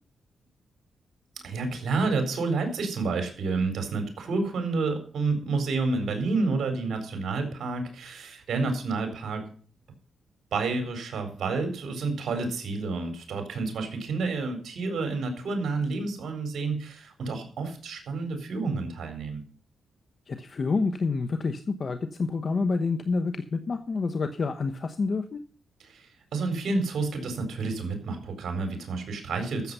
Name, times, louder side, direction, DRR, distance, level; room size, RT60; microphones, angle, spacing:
voice 1, 1.4-9.4 10.5-19.4 25.8-29.7, right 3 dB, 70° right, 6 dB, 4.2 m, -29 dB
voice 2, 20.3-25.4, left 4 dB, 50° left, 8 dB, 1.0 m, -28 dB
14.0 x 7.5 x 5.5 m, 0.43 s
cardioid pair, 85°, 0 cm